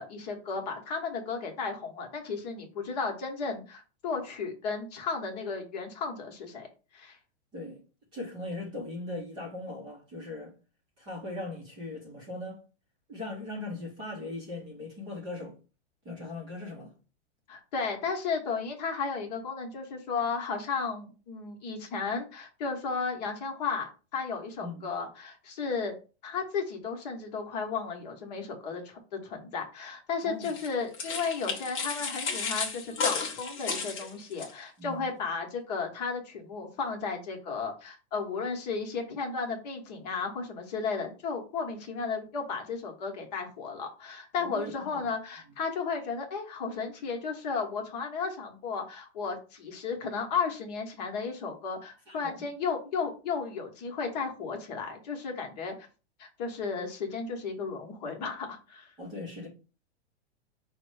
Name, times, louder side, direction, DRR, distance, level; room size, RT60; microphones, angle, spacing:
voice 1, 0.0-6.7 6.9-7.2 17.5-25.9 26.2-55.7 56.2-58.9, left 5 dB, 40° left, 1.0 m, -34 dB
voice 2, 8.1-10.5 11.0-12.6 13.1-15.6 16.0-16.9 24.6-24.9 30.2-30.5 34.8-35.1 44.4-45.1 52.1-52.5 59.0-59.5, left 2 dB, 15° right, 0.6 m, -39 dB
sound 1, 30.4-34.5, left 5 dB, 20° left, 0.7 m, -33 dB
5.1 x 2.1 x 4.6 m
supercardioid pair, 175°, 34 cm